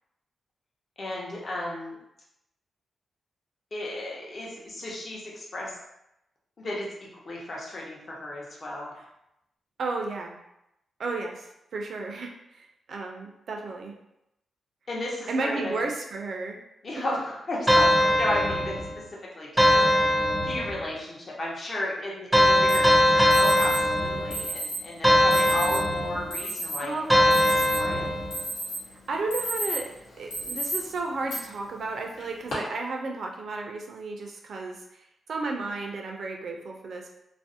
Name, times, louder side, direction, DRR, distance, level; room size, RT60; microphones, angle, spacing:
voice 1, 1.0-2.0 3.7-5.8 6.6-6.9 7.3-8.9 14.9-15.8 16.8-18.7 19.4-20.1 20.4-28.1, left 1 dB, 45° left, -4 dB, 0.7 m, -34 dB
voice 2, 9.8-10.4 11.0-14.0 15.3-16.6 17.0-17.1 26.8-27.1 29.1-29.9 30.2-37.1, right 3 dB, 65° right, 2 dB, 0.4 m, -33 dB
sound 1, 17.7-19.0 19.6-20.9 22.3-24.5 25.0-26.3 27.1-28.4, equal, 5° right, 0.5 m, -21 dB
Alarm, 22.7-22.8 23.3-23.8 24.3-24.8 25.3-25.8 26.3-26.8 27.2-27.9 28.3-28.8 29.2-29.9 30.3-30.8 31.3-31.4 32.2-32.5, right 1 dB, 90° left, 0.9 m, -32 dB
2.4 x 2.0 x 2.6 m, 0.85 s
cardioid pair, 85°, 0 cm